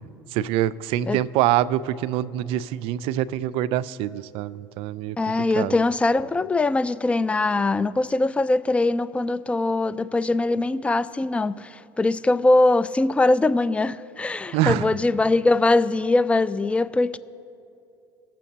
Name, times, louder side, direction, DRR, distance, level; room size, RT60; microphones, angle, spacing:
voice 1, 0.3-5.2 5.6-5.8 14.5-14.9, right 12 dB, 65° right, 0.4 m, -25 dB
voice 2, 5.2-17.2, left 2 dB, 10° left, 0.3 m, -22 dB
21.0 x 7.3 x 2.8 m
supercardioid pair, 85°, 10 cm